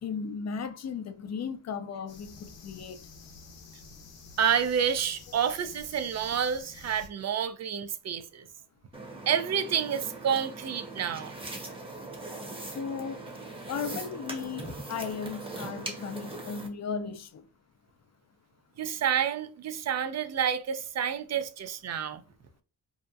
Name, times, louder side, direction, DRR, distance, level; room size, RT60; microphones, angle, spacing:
voice 1, 0.0-3.0 12.7-13.2 13.7-17.4, left 6 dB, 40° left, 0.5 m, -36 dB
sound 1, 2.1-7.1, left 4 dB, 85° left, 0.7 m, -50 dB
voice 2, 4.4-8.5 9.3-11.3 18.8-22.2, right 8 dB, 40° right, 0.4 m, -29 dB
sound 2, 8.9-16.7, right 2 dB, 10° right, 0.9 m, -40 dB
2.7 x 2.1 x 2.4 m
supercardioid pair, 55°, 43 cm